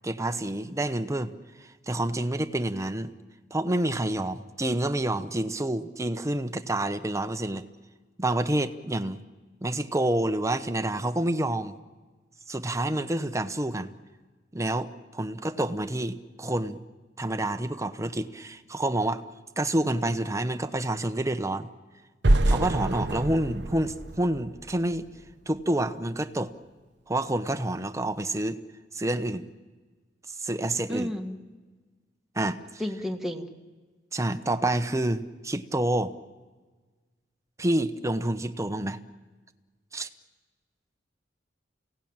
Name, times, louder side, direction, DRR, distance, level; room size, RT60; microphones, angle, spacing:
voice 1, 0.0-1.3 1.9-3.1 3.5-7.6 8.2-9.2 9.6-11.8 12.5-13.9 14.5-16.8 17.2-19.2 19.6-21.7 22.5-25.1 25.5-26.5 27.1-28.6 28.9-29.5 30.4-31.1 32.3-32.6 34.1-36.1 37.6-39.0 39.9-40.1, right 1 dB, 15° right, 10 dB, 1.0 m, -28 dB
sound 1, 22.2-25.2, right 1 dB, 70° right, 0.9 m, -26 dB
voice 2, 30.9-31.4 32.8-33.5, equal, ahead, 1 dB, 1.7 m, -31 dB
29.0 x 17.5 x 8.9 m, 1.4 s
head